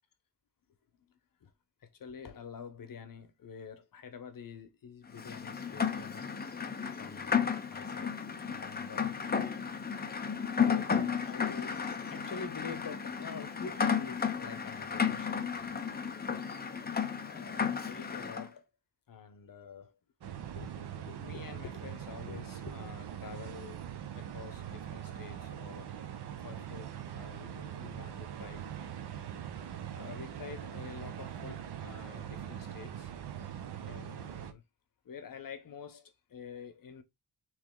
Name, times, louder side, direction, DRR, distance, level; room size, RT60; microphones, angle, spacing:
voice 1, 1.8-6.4 7.0-7.4 7.7-9.2 10.3-15.7 17.2-18.7 19.1-20.0 20.5-23.8 24.1-25.9 26.4-28.7 29.9-33.1 33.8-34.6 35.0-37.0, left 6 dB, 55° left, 0.8 m, -47 dB
Rain, 5.1-18.5, left 6 dB, 25° left, 0.5 m, -33 dB
sound 1, 20.2-34.5, right 9 dB, 75° right, 0.7 m, -42 dB
3.2 x 3.1 x 3.6 m
wide cardioid pair, 110°, 40 cm